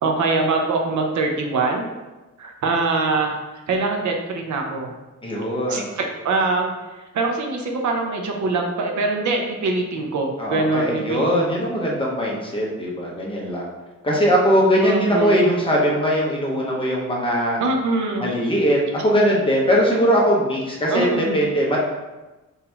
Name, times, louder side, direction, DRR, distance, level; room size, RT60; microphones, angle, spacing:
voice 1, 0.0-1.9 2.4-3.4 3.7-4.9 5.7-6.7 7.1-11.2 14.8-15.5 17.6-18.3 20.9-21.4, right 3 dB, 75° right, 2 dB, 0.7 m, -23 dB
voice 2, 5.2-5.9 10.4-13.7 14.0-17.6 18.2-21.1 21.3-21.8, equal, 15° left, -4 dB, 0.8 m, -20 dB
3.9 x 2.7 x 4.3 m, 1.1 s
wide cardioid pair, 175°, 30 cm